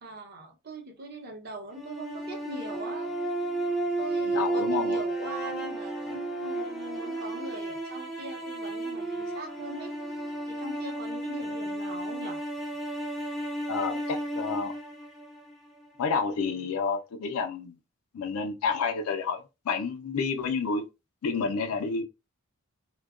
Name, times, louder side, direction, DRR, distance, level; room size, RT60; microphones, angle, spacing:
voice 1, 0.0-3.1 4.0-9.9 10.5-12.4, right 2 dB, 45° right, 0.7 m, -41 dB
sound 1, 1.7-15.9, right 2 dB, ahead, 0.4 m, -33 dB
voice 2, 4.3-5.3 13.7-14.7 16.0-17.8 18.1-20.8 21.2-22.0, left 5 dB, 90° left, 0.4 m, -30 dB
2.7 x 2.1 x 2.4 m
head